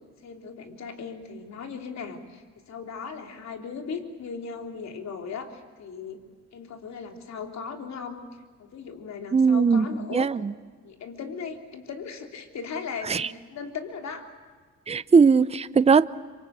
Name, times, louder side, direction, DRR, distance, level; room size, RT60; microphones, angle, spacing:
voice 1, 0.2-6.2 6.5-8.2 8.6-10.3 10.8-14.3, left 5 dB, 65° left, 3.5 m, -37 dB
voice 2, 9.3-9.9 10.1-10.5 13.1-13.3 14.9-16.1, right 5 dB, 20° right, 0.7 m, -19 dB
26.0 x 25.0 x 8.3 m
cardioid pair, 90°, 30 cm